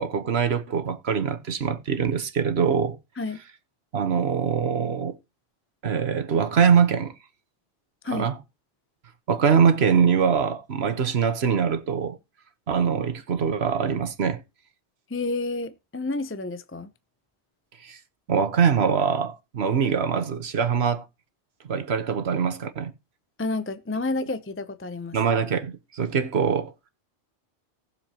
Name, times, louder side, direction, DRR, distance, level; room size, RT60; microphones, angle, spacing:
voice 1, 0.0-3.0 3.9-5.1 5.8-7.1 8.1-8.4 9.3-12.2 12.7-14.4 17.8-18.0 18.3-21.0 21.7-22.9 25.1-26.7, right 6 dB, 65° right, 1.3 m, -23 dB
voice 2, 15.1-16.9 23.4-25.2, left 3 dB, 15° left, 0.5 m, -30 dB
19.0 x 7.0 x 2.9 m
omnidirectional pair, 1.1 m